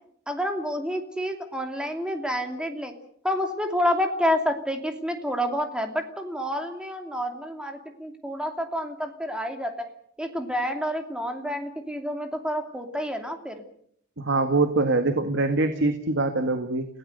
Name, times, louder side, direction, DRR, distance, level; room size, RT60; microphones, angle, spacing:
voice 1, 0.3-2.9 3.2-9.9 10.2-13.6, equal, 5° right, 5 dB, 2.8 m, -29 dB
voice 2, 14.2-16.9, right 2 dB, 60° right, 7 dB, 1.8 m, -23 dB
30.0 x 17.5 x 6.7 m, 0.67 s
head